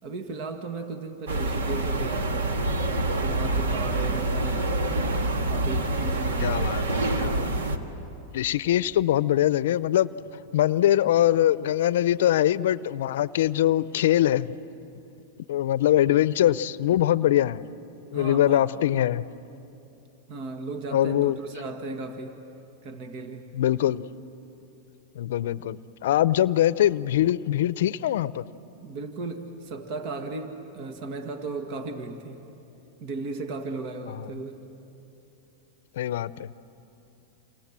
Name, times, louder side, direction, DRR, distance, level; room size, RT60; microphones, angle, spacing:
voice 1, 0.0-2.5 3.2-4.9 5.5-6.8 18.1-18.8 20.3-22.4 22.8-23.5 28.8-32.4 33.0-34.7, right 3 dB, 55° right, 2.0 m, -36 dB
sound 1, 1.3-7.8, right 2 dB, 85° right, 1.9 m, -26 dB
voice 2, 6.4-7.6 8.3-10.1 10.5-14.5 15.5-17.6 18.1-19.3 20.9-21.4 23.5-24.0 25.2-28.4 34.1-34.3 36.0-36.5, left 12 dB, 75° left, 0.6 m, -23 dB
28.5 x 27.5 x 7.5 m
hypercardioid pair, 120°, 0 cm